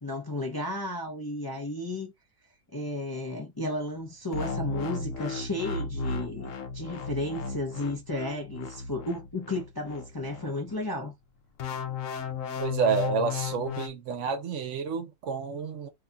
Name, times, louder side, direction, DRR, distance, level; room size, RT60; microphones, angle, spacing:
voice 1, 0.0-2.1 2.7-11.1, left 1 dB, 25° left, 0.5 m, -33 dB
sound 1, 4.3-10.9 11.6-13.9, left 5 dB, 75° left, 1.0 m, -35 dB
voice 2, 12.6-15.9, right 6 dB, 65° right, 1.0 m, -29 dB
2.8 x 2.3 x 3.8 m
omnidirectional pair, 1.4 m